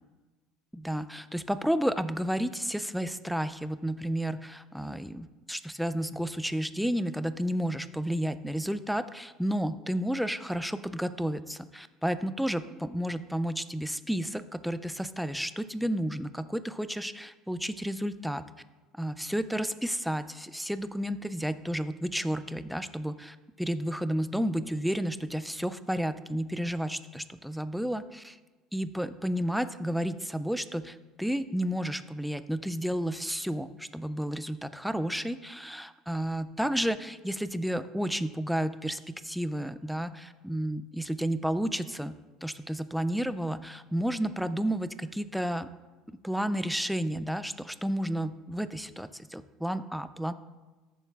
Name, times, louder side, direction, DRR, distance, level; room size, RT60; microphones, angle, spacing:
voice 1, 0.7-18.4 19.0-28.4 28.7-42.1 42.4-45.7 46.2-50.3, equal, ahead, 12 dB, 0.3 m, -31 dB
14.0 x 7.0 x 2.4 m, 1.2 s
cardioid pair, 145°, 0 cm